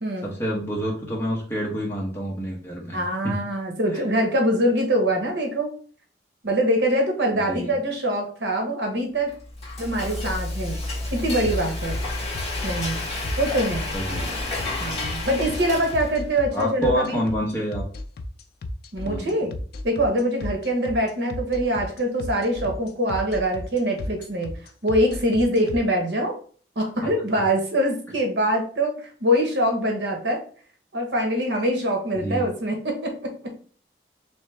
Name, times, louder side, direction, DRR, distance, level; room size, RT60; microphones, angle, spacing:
voice 1, 0.2-3.3 3.9-4.0 7.3-7.7 13.9-14.6 16.5-17.8 19.0-19.3 32.1-32.5, equal, 15° left, -3 dB, 0.9 m, -28 dB
voice 2, 2.9-5.7 6.4-9.3 9.8-10.8 11.1-12.0 12.6-13.0 13.4-13.9 14.8-17.3 18.9-19.5 19.8-24.5 24.8-26.3 26.8-28.9 29.2-30.4 30.9-33.3, equal, 70° right, 3 dB, 1.0 m, -24 dB
Frying (food), 9.3-16.3, left 2 dB, 35° left, 1.5 m, -30 dB
sound 1, 11.5-25.8, left 1 dB, 55° left, 0.4 m, -33 dB
3.2 x 3.0 x 3.2 m, 0.43 s
head